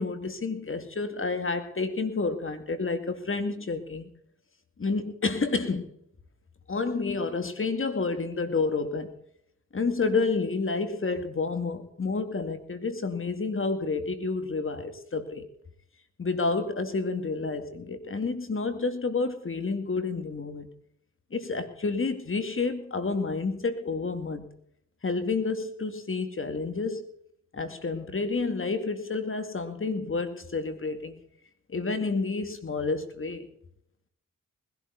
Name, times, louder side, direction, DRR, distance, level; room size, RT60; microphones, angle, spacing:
voice 1, 0.0-4.1 4.8-5.9 6.7-9.1 9.7-15.5 16.2-20.7 21.3-24.5 25.0-27.0 27.5-31.2 31.7-33.5, left 4 dB, 40° left, 2.4 m, -29 dB
20.5 x 12.5 x 4.1 m
cardioid pair, 50°, 31 cm